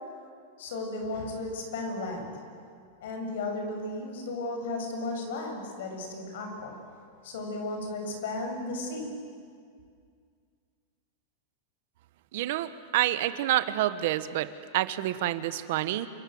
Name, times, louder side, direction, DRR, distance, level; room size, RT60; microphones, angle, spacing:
voice 1, 0.6-2.3 3.0-6.8 7.2-9.1, left 2 dB, 70° left, 3 dB, 7.1 m, -34 dB
voice 2, 12.3-16.1, right 14 dB, 55° right, 13 dB, 1.2 m, -28 dB
28.5 x 26.5 x 7.9 m, 2.2 s
supercardioid pair, 170°, 0 cm